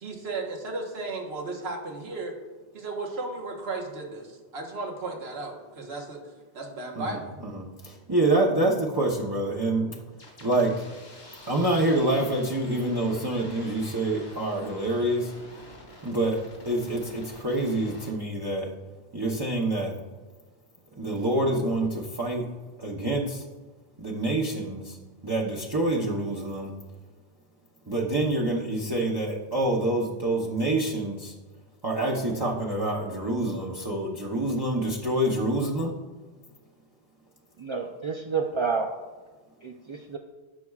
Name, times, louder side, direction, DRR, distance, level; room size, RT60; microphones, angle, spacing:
voice 1, 0.0-2.3 2.7-6.2 6.5-7.3, right 3 dB, 65° right, 1 dB, 1.5 m, -35 dB
voice 2, 7.5-9.9 10.4-10.7 11.5-15.3 16.0-16.4 16.6-18.7 19.1-20.0 21.0-22.4 22.8-23.4 24.0-25.0 25.2-26.7 27.9-31.3 31.8-35.9, right 1 dB, 25° right, -3 dB, 0.8 m, -26 dB
sound 1, 10.2-18.1, left 1 dB, 80° left, 3.1 m, -47 dB
voice 3, 37.6-38.9 39.6-40.2, right 5 dB, 40° right, 1 dB, 0.4 m, -29 dB
16.5 x 6.0 x 2.4 m, 1.3 s
omnidirectional pair, 1.2 m